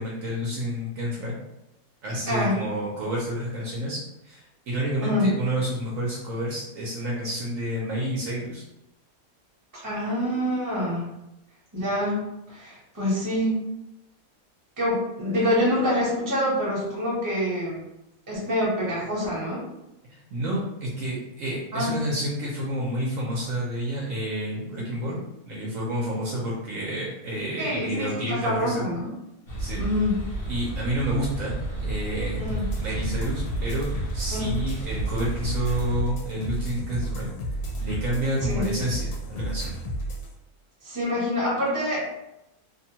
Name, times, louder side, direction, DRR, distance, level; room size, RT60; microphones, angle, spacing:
voice 1, 0.0-1.3 2.0-4.0 4.2-8.6 20.1-25.2 25.5-28.9 29.6-29.8 30.5-32.5 32.8-37.3 37.8-39.7, equal, 65° right, -4 dB, 1.0 m, -29 dB
voice 2, 2.3-2.6 5.0-5.3 9.8-11.1 11.7-13.6 14.8-17.8 18.3-19.7 21.7-22.0 27.6-29.1 29.8-30.1 32.4-32.7 34.3-34.5 38.4-38.7 40.8-42.2, left 1 dB, 15° right, -7 dB, 0.8 m, -26 dB
sound 1, 29.5-36.0, right 2 dB, 45° left, 1.0 m, -32 dB
sound 2, 32.5-40.3, right 1 dB, 85° left, 1.1 m, -32 dB
2.8 x 2.2 x 2.8 m, 0.87 s
omnidirectional pair, 1.6 m